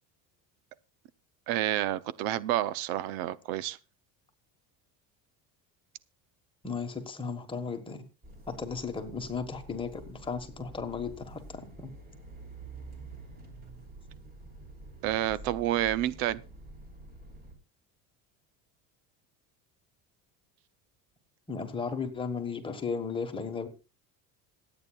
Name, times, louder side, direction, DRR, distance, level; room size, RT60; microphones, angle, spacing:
voice 1, 1.5-3.8 15.0-16.4, right 13 dB, 70° right, 0.7 m, -29 dB
voice 2, 6.6-8.1 8.5-11.9 21.5-23.7, left 5 dB, 15° left, 1.4 m, -35 dB
sound 1, 8.2-17.5, right 2 dB, 25° right, 3.1 m, -48 dB
26.5 x 8.8 x 2.4 m
cardioid pair, 175°, 37 cm